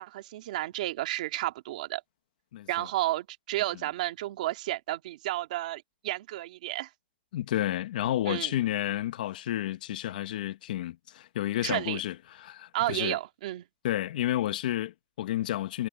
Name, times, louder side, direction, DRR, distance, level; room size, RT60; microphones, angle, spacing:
voice 1, 0.0-2.0 2.7-6.9 8.3-8.6 11.6-12.0 12.7-13.6, right 15 dB, 45° right, 2.4 m, -32 dB
voice 2, 2.5-2.9 7.3-13.2 13.8-15.9, left 13 dB, 55° left, 1.5 m, -31 dB
hypercardioid pair, 170°, 6 cm